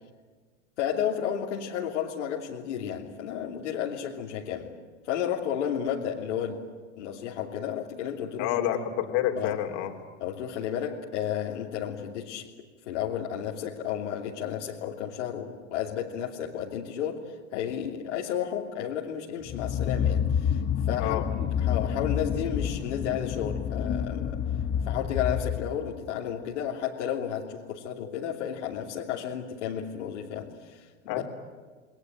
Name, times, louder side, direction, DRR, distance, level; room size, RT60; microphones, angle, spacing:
voice 1, 0.8-4.7 5.0-6.6 6.9-8.5 9.4-9.6 10.2-12.5 12.9-20.6 20.9-24.4 24.9-31.2, left 9 dB, 70° left, -2 dB, 3.1 m, -32 dB
voice 2, 8.4-9.9 21.0-21.2 31.1-31.2, left 11 dB, 55° left, 4 dB, 3.6 m, -28 dB
sound 1, 19.4-26.0, left 8 dB, 30° left, 1.6 m, -29 dB
29.0 x 21.0 x 9.1 m, 1.4 s
hypercardioid pair, 90°, 37 cm